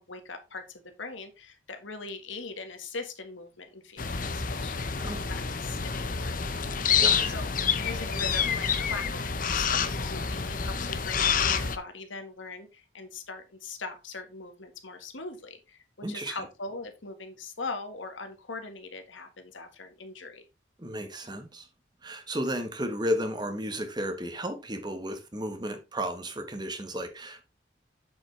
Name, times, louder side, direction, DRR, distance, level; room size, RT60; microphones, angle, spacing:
voice 1, 0.0-6.4 6.8-7.5 7.8-20.5, left 3 dB, 80° left, 1.7 m, -41 dB
sound 1, 4.0-11.8, left 6 dB, 45° left, 0.8 m, -28 dB
voice 2, 7.0-7.3 16.0-16.4 20.8-21.7 22.0-27.4, equal, 20° right, 1.3 m, -33 dB
7.9 x 7.3 x 3.3 m
head